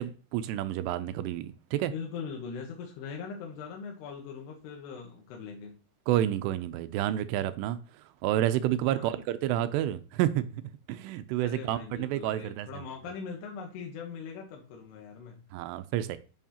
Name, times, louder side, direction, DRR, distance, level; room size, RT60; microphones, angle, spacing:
voice 1, 0.0-1.9 6.1-7.8 8.2-10.4 10.9-12.7 15.5-16.2, right 12 dB, 85° right, 2.6 m, -29 dB
voice 2, 1.8-5.8 8.8-9.2 11.4-15.4, left 6 dB, 80° left, 3.0 m, -41 dB
9.2 x 5.6 x 2.8 m
omnidirectional pair, 4.9 m